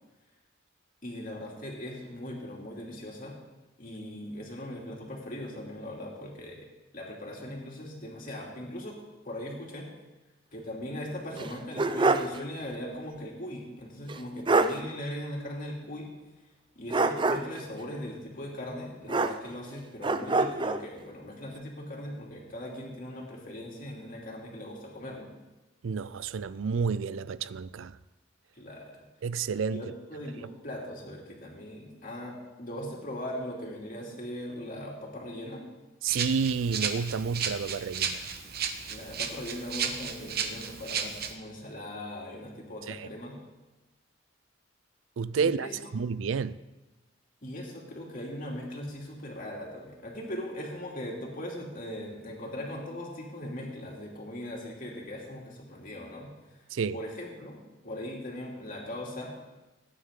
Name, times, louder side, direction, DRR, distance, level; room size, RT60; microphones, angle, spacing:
voice 1, 1.0-3.4 3.8-6.7 6.9-9.0 9.2-9.9 10.5-16.1 16.7-25.3 28.5-29.0 29.7-35.6 38.9-43.4 45.4-45.8 47.4-56.7 56.9-57.6 57.8-59.3, left 1 dB, 45° left, 2.8 m, -39 dB
sound 1, 11.4-12.4 12.7-12.8 14.1-14.2 14.5-14.8 16.9-17.6 19.1-19.7 20.0-20.8, right 3 dB, 25° right, 0.5 m, -25 dB
voice 2, 25.8-28.0 29.2-29.8 36.0-38.3 42.9-43.1 45.2-45.7 45.9-46.6 56.7-57.0, right 5 dB, 85° right, 0.4 m, -30 dB
Rattle (instrument), 36.1-41.3, right 7 dB, 55° right, 1.0 m, -34 dB
19.0 x 9.8 x 3.7 m
head